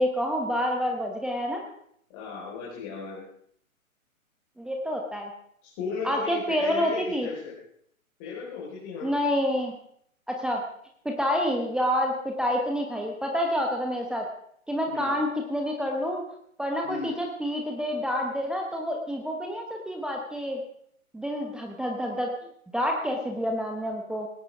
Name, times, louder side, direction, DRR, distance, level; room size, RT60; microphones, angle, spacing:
voice 1, 0.0-1.6 4.6-5.3 6.0-7.3 9.0-9.7 10.3-10.6 11.0-14.3 14.7-16.2 16.6-20.6 21.1-22.3 22.7-24.3, equal, ahead, 0 dB, 1.1 m, -28 dB
voice 2, 2.1-3.2 5.6-7.6 8.2-9.1 14.9-15.2 16.8-17.1, left 4 dB, 30° left, -5 dB, 4.8 m, -36 dB
18.5 x 17.5 x 3.6 m, 0.68 s
figure-of-eight pair, 125°, 43 cm